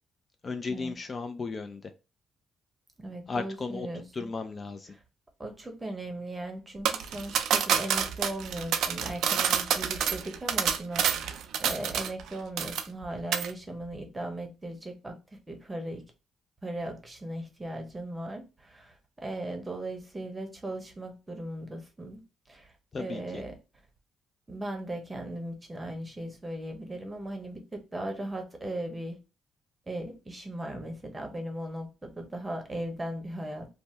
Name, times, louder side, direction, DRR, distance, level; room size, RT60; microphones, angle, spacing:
voice 1, 0.4-1.9 3.3-3.9 4.1-4.9 22.9-23.4, left 4 dB, 35° left, 0.3 m, -35 dB
voice 2, 3.0-4.3 5.4-11.3 11.6-15.2 15.5-16.0 16.6-22.2 22.5-22.7 23.0-23.5 24.5-29.2 29.9-33.7, right 1 dB, 15° right, 0.9 m, -38 dB
sound 1, 6.8-12.3 12.6-13.0 13.3-13.5, right 8 dB, 80° right, 0.3 m, -28 dB
2.7 x 2.1 x 3.2 m
cardioid pair, 90°, 0 cm